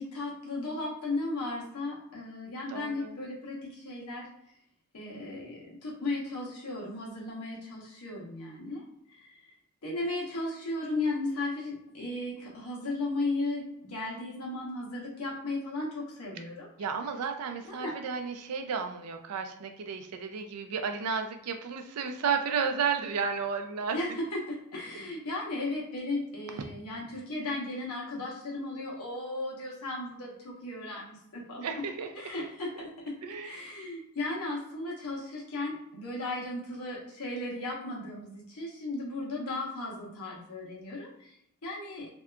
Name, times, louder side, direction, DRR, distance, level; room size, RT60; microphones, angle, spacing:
voice 1, 0.0-4.2 4.9-8.8 9.1-9.3 9.8-16.7 17.6-17.9 23.9-31.6 32.1-33.1 33.4-41.3 41.6-42.1, left 2 dB, 85° left, -3 dB, 0.9 m, -35 dB
voice 2, 2.7-3.2 16.8-24.0 26.5-26.7 31.6-32.1 32.4-32.5 32.8-32.9 33.2-33.7, right 6 dB, 80° right, 6 dB, 0.4 m, -33 dB
2.7 x 2.3 x 2.2 m, 0.76 s
head